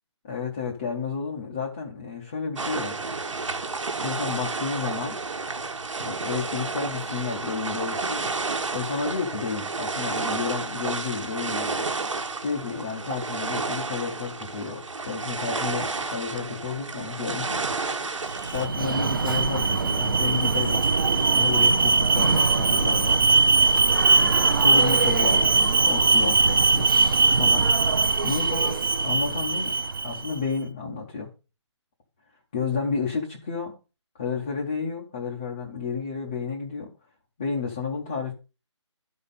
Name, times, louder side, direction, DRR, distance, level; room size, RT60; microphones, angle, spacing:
voice 1, 0.2-3.0 4.0-5.2 6.0-8.3 8.7-11.9 12.4-18.0 18.5-23.3 24.2-26.9 27.4-27.7 28.2-29.7 30.0-31.3 32.5-33.8 34.1-36.9 37.4-38.3, left 5 dB, 10° left, 0.4 m, -31 dB
sound 1, 2.6-18.7, right 4 dB, 85° right, 1.3 m, -31 dB
Alarm, 18.3-30.3, right 4 dB, 45° right, 0.6 m, -21 dB
11.5 x 4.2 x 5.1 m
hypercardioid pair, 170°, 16 cm